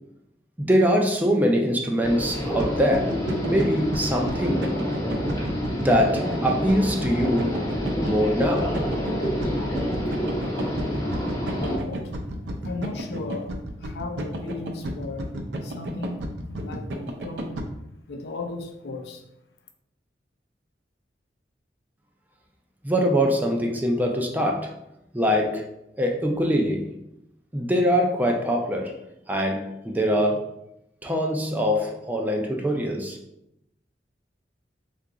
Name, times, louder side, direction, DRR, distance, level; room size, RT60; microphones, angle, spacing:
voice 1, 0.6-3.2 3.5-4.7 5.8-7.6 8.0-8.8 22.8-24.7 25.1-25.7 26.0-26.9 27.5-29.0 29.3-30.5 31.0-33.2, equal, 10° right, 1 dB, 0.4 m, -23 dB
sound 1, 2.0-11.8, equal, 20° left, 0.7 m, -28 dB
sound 2, 2.4-17.7, right 1 dB, 70° right, 0.5 m, -32 dB
voice 2, 11.5-12.1 12.6-13.5 13.8-15.3 15.6-17.5 18.1-19.2, left 3 dB, 65° left, 5 dB, 0.4 m, -36 dB
2.8 x 2.4 x 3.5 m, 0.81 s
head